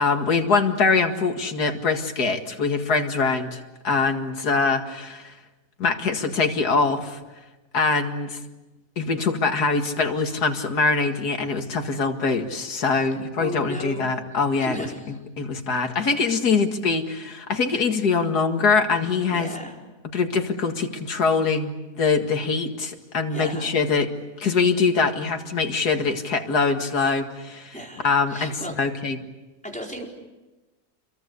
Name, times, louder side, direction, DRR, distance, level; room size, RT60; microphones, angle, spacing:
voice 1, 0.0-5.3 5.8-7.2 7.7-8.4 9.0-19.5 20.1-24.1 24.4-27.7 28.0-29.2, left 4 dB, 80° left, 5 dB, 2.5 m, -23 dB
voice 2, 13.4-15.1 19.3-19.8 23.3-23.7 27.7-28.8 29.6-30.1, equal, 5° left, -1 dB, 4.5 m, -35 dB
29.0 x 23.0 x 8.3 m, 1.1 s
omnidirectional pair, 1.6 m